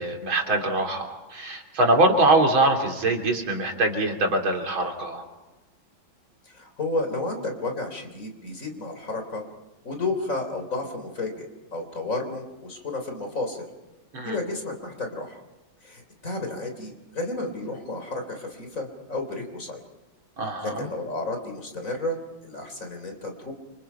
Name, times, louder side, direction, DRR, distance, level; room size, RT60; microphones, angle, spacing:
voice 1, 0.0-5.2 14.1-14.4 20.4-20.9, right 2 dB, 80° right, 2 dB, 4.1 m, -23 dB
voice 2, 6.5-9.4 9.8-13.7 14.2-15.4 15.8-19.9 20.6-23.5, left 2 dB, 40° left, 5 dB, 4.1 m, -32 dB
29.5 x 26.5 x 5.7 m, 1.1 s
omnidirectional pair, 2.2 m